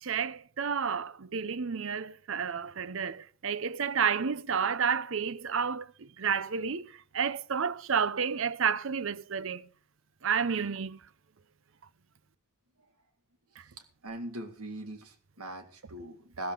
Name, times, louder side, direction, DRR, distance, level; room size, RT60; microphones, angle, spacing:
voice 1, 0.0-9.6 10.2-11.0, right 6 dB, 60° right, 0.6 m, -31 dB
voice 2, 14.0-16.5, right 1 dB, 85° right, 2.2 m, -40 dB
14.5 x 13.0 x 3.9 m
head